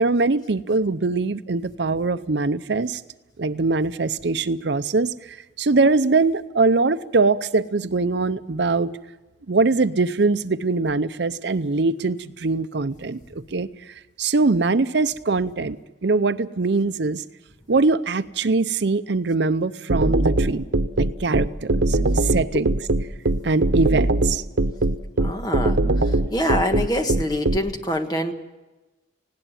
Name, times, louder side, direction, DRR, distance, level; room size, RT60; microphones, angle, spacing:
voice 1, 0.0-3.0 3.4-8.9 9.5-17.2 17.7-20.6 21.0-22.7 23.4-24.4, right 3 dB, 70° right, 13 dB, 0.7 m, -22 dB
sound 1, 19.9-27.6, right 2 dB, 85° right, 1.1 m, -20 dB
voice 2, 25.2-28.3, left 1 dB, 20° left, 6 dB, 1.5 m, -25 dB
19.0 x 17.0 x 9.2 m, 1.1 s
head